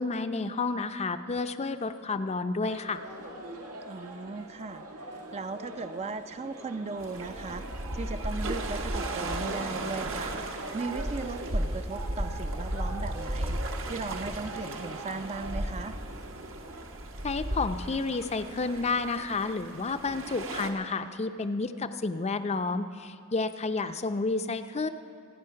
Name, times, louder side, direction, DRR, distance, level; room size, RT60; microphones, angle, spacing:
voice 1, 0.0-3.0 17.2-24.9, left 3 dB, 30° left, 9 dB, 0.5 m, -30 dB
sound 1, 2.6-16.9, right 2 dB, 90° right, 2.0 m, -43 dB
voice 2, 3.8-4.8 5.3-16.0 23.8-24.0, right 3 dB, 30° right, 10 dB, 0.4 m, -38 dB
sound 2, 7.0-20.7, right 1 dB, 65° right, 1.3 m, -35 dB
26.0 x 9.2 x 5.8 m, 2.3 s
head